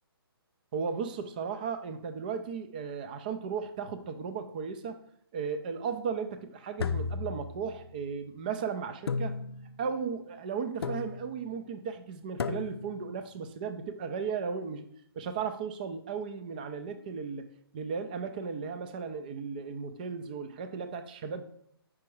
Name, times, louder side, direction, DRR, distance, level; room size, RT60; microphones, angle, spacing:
voice 1, 0.7-5.0 5.3-9.4 9.8-14.9 15.2-17.5 17.7-21.4, right 6 dB, 20° right, 0.4 m, -35 dB
sound 1, 6.8-8.0 9.1-9.9 10.8-11.4 12.4-13.1, left 4 dB, 75° left, 0.5 m, -34 dB
5.2 x 4.8 x 4.5 m
hypercardioid pair, 165°, 13 cm